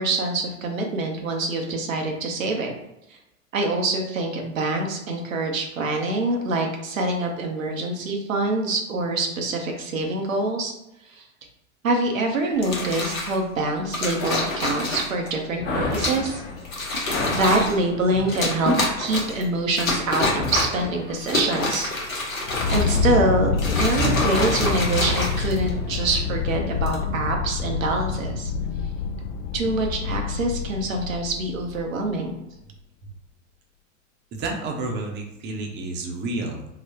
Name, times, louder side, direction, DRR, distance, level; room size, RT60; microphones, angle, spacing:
voice 1, 0.0-2.7 3.5-10.7 11.1-11.2 11.8-16.4 17.3-21.9 22.7-28.5 29.5-32.4, right 2 dB, 80° right, 2 dB, 0.8 m, -25 dB
sound 1, 12.6-13.4 13.9-15.3 15.9-16.3 16.6-17.8 18.3-19.4 19.8-20.8 21.2-23.1 23.5-25.9 26.7-27.0, left 2 dB, 90° left, 1.0 m, -27 dB
sound 2, 15.6-23.6 23.9-26.3, left 2 dB, 25° left, 0.7 m, -32 dB
sound 3, 22.5-32.1, left 4 dB, 60° left, 0.5 m, -27 dB
voice 2, 34.3-36.7, right 2 dB, 30° right, 2 dB, 0.7 m, -30 dB
3.9 x 2.2 x 2.8 m, 0.88 s
hypercardioid pair, 90°, 39 cm